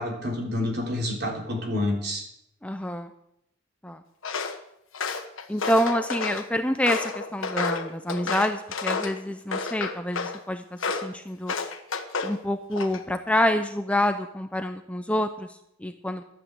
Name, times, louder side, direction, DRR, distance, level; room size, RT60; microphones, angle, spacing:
voice 1, 0.0-2.2, left 1 dB, 55° right, 0 dB, 3.5 m, -28 dB
voice 2, 2.6-3.1 3.8-4.0 5.5-11.5 12.2-16.2, left 1 dB, 5° left, 7 dB, 0.6 m, -27 dB
Walk footsteps, 4.2-4.6 4.9-6.4 6.9-9.2 9.5-10.4 10.8-11.1 11.5-12.4 12.7-13.2, left 4 dB, 80° left, 1.4 m, -30 dB
12.5 x 9.0 x 8.1 m, 0.77 s
head